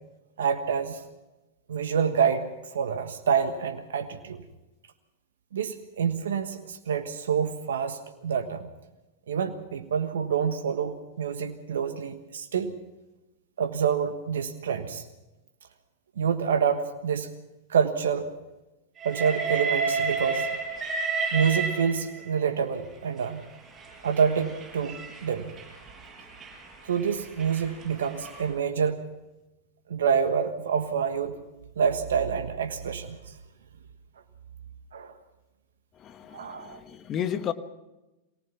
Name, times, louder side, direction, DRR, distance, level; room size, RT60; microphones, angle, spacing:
voice 1, 0.4-1.0 1.7-4.4 5.5-8.7 9.3-12.7 13.6-15.1 16.2-17.3 17.7-18.3 19.0-20.5 21.3-23.4 24.0-25.5 26.8-29.0 29.9-31.4 31.8-33.3 34.9-35.2 36.3-36.8, right 7 dB, 75° right, 7 dB, 1.4 m, -27 dB
Train, 19.0-22.4 23.2-28.5, right 4 dB, 25° right, 7.6 m, -32 dB
voice 2, 36.0-37.5, left 9 dB, 35° left, 11 dB, 1.5 m, -33 dB
24.0 x 18.5 x 5.9 m, 1.0 s
hypercardioid pair, 105°, 0 cm